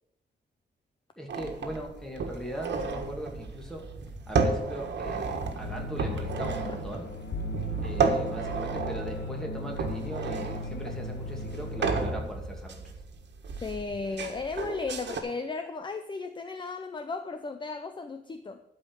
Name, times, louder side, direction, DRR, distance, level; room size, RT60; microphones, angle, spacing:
voice 1, 1.2-3.9 4.3-7.1 7.8-13.0, right 1 dB, 5° left, 0 dB, 2.4 m, -39 dB
sound 1, 1.3-15.2, right 4 dB, 85° right, 1.6 m, -33 dB
sound 2, 5.6-11.9, equal, 75° left, 1.4 m, -37 dB
voice 2, 13.6-18.6, left 4 dB, 25° left, 8 dB, 0.6 m, -35 dB
12.5 x 5.2 x 8.0 m, 0.85 s
wide cardioid pair, 140°, 18 cm